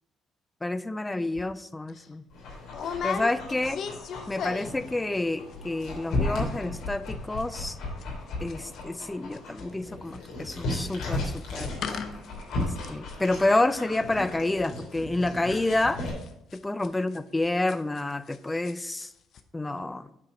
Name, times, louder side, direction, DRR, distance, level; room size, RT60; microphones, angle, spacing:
voice 1, 0.6-2.2 3.0-3.8 4.3-7.8 8.4-11.7 12.9-16.0 16.5-19.1 19.5-20.0, left 2 dB, 15° left, 14 dB, 0.5 m, -28 dB
sound 1, 1.3-1.5 1.9-2.1 2.7-4.9 5.1-5.5 5.8-5.9 6.1-6.5 6.7-9.1 9.3-18.4 18.6-19.1 19.3-19.4, left 6 dB, 60° left, 0.7 m, -38 dB
Dog, 2.3-16.1, left 2 dB, 75° left, 3.0 m, -35 dB
9.0 x 4.6 x 5.2 m, 0.82 s
cardioid pair, 90°, 0 cm